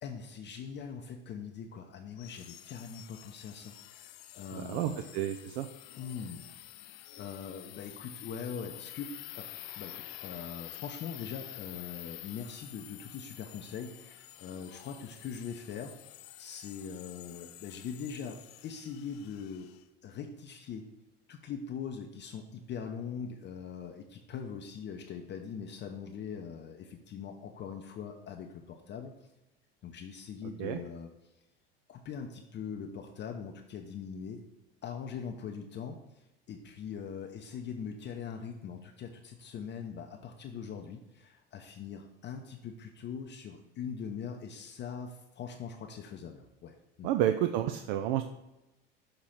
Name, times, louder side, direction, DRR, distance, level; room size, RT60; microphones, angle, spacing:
voice 1, 0.0-5.0 6.0-6.4 7.2-9.5 9.8-15.9 16.4-19.7 20.0-20.9 21.3-29.3 29.8-31.1 31.9-34.4 34.8-47.1, left 6 dB, 35° left, 2 dB, 0.6 m, -42 dB
sound 1, 2.2-19.8, left 14 dB, 80° left, 0.5 m, -49 dB
voice 2, 4.5-5.7 30.6-30.8 47.0-48.2, right 11 dB, 65° right, 8 dB, 0.4 m, -30 dB
6.5 x 2.9 x 5.6 m, 0.97 s
hypercardioid pair, 85°, 31 cm